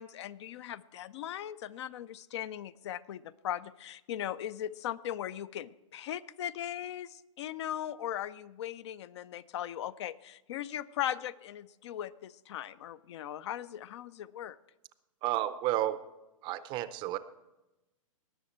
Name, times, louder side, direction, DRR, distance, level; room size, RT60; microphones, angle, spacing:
voice 1, 0.0-14.6, left 11 dB, 55° left, 17 dB, 0.4 m, -39 dB
voice 2, 15.2-16.0 16.4-17.2, right 14 dB, 25° right, 14 dB, 0.5 m, -31 dB
19.0 x 6.4 x 4.4 m, 0.98 s
hypercardioid pair, 135°, 18 cm